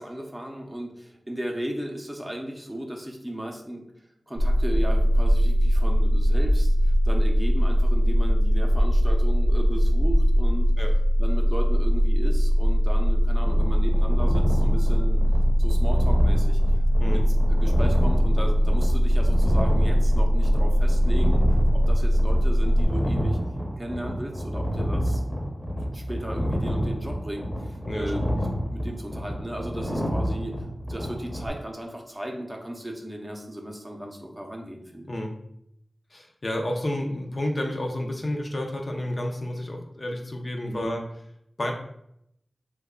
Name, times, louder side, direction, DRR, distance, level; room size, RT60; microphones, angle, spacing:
voice 1, 0.0-3.9 4.3-10.7 11.2-15.2 15.6-16.6 17.1-23.4 23.8-28.3 28.7-30.6 30.8-35.1 40.7-40.9, right 1 dB, 15° right, 1 dB, 0.7 m, -36 dB
sound 1, 4.4-22.9, equal, 80° right, 0.6 m, -20 dB
sound 2, 13.4-31.5, equal, 20° left, 0.8 m, -29 dB
voice 2, 27.8-28.2 35.1-35.3 36.1-41.0 41.6-41.7, left 1 dB, 45° left, 1 dB, 0.6 m, -30 dB
3.1 x 2.3 x 3.7 m, 0.74 s
cardioid pair, 50°, 0 cm